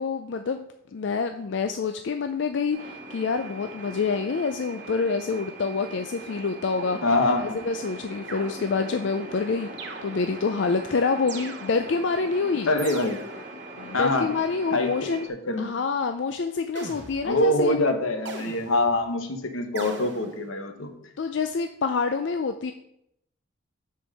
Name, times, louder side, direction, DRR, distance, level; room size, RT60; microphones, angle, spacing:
voice 1, 0.0-7.0 7.4-9.7 10.0-12.7 13.8-15.3 15.6-17.8 21.2-22.7, left 4 dB, 60° left, 7 dB, 0.4 m, -27 dB
sound 1, 2.7-15.3, right 2 dB, 40° right, 1.1 m, -41 dB
sound 2, 6.8-7.6 8.3-9.0 9.8-10.5 11.3-12.1 12.8-13.5 16.7-17.5 18.2-19.0 19.7-20.5, right 3 dB, 60° right, 0.9 m, -41 dB
voice 2, 7.0-7.6 12.7-13.2 13.9-14.3 14.7-15.2 15.5-15.7 17.2-20.9, left 2 dB, 85° left, 6 dB, 1.1 m, -24 dB
6.2 x 4.5 x 6.5 m, 0.76 s
head